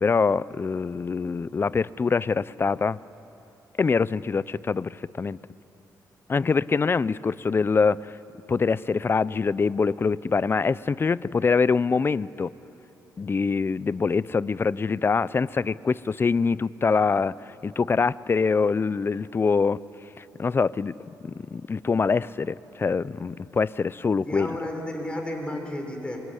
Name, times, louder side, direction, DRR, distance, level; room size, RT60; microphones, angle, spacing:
voice 1, 0.0-3.0 3.8-5.4 6.3-8.2 8.5-12.5 13.2-19.8 20.2-21.0 21.2-24.6, left 5 dB, 30° left, 19 dB, 0.5 m, -24 dB
voice 2, 24.1-26.2, left 1 dB, 15° left, 2 dB, 5.9 m, -32 dB
26.5 x 22.5 x 10.0 m, 3.0 s
cardioid pair, 85°, 7 cm